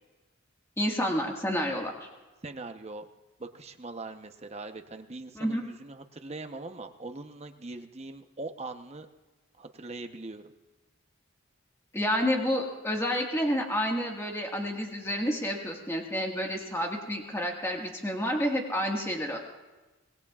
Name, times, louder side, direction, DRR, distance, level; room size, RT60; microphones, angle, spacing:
voice 1, 0.8-2.1 5.3-5.6 11.9-19.4, equal, 15° left, 0 dB, 1.6 m, -29 dB
voice 2, 2.4-3.0 3.4-9.1 9.6-10.5, right 2 dB, 30° right, 6 dB, 0.8 m, -41 dB
25.0 x 20.0 x 2.4 m, 1.2 s
head